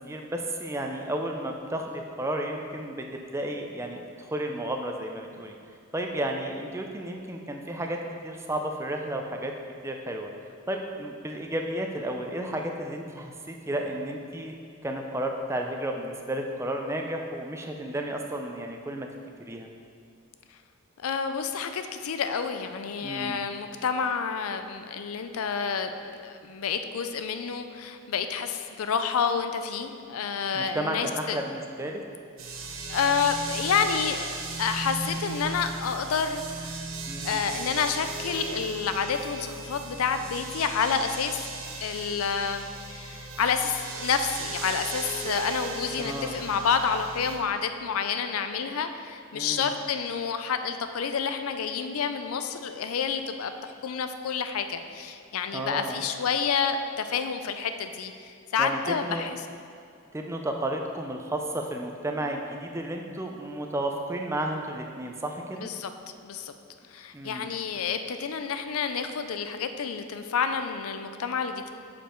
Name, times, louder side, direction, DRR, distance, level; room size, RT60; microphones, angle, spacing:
voice 1, 0.1-5.6 5.9-9.5 9.8-10.3 10.7-14.5 14.8-19.1 19.4-19.7 23.0-23.4 30.5-32.0 37.1-37.4 46.0-46.4 49.3-49.7 55.5-56.0 58.6-59.3 60.1-65.7 67.1-67.5, right 1 dB, 15° right, 3 dB, 0.4 m, -32 dB
voice 2, 21.0-31.4 32.9-36.8 37.2-41.4 41.8-59.4 65.6-65.9 66.2-66.5 66.9-71.7, left 6 dB, 80° left, 8 dB, 0.4 m, -29 dB
sound 1, 32.4-47.4, right 3 dB, 70° right, 0.8 m, -37 dB
6.7 x 5.2 x 4.4 m, 2.4 s
head